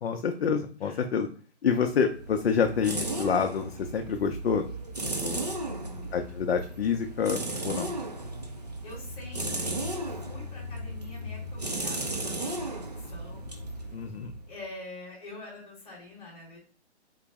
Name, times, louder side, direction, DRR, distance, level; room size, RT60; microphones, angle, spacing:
voice 1, 0.0-1.3 1.6-4.6 5.2-5.5 6.1-7.9 13.9-14.3, left 6 dB, 60° left, 5 dB, 0.5 m, -27 dB
sound 1, 1.9-14.6, right 1 dB, 40° right, 0.4 m, -35 dB
voice 2, 5.6-6.1 8.8-13.5 13.8-13.9 14.5-16.6, left 2 dB, 10° left, -7 dB, 0.9 m, -46 dB
3.7 x 2.0 x 3.4 m, 0.42 s
hypercardioid pair, 180°, 34 cm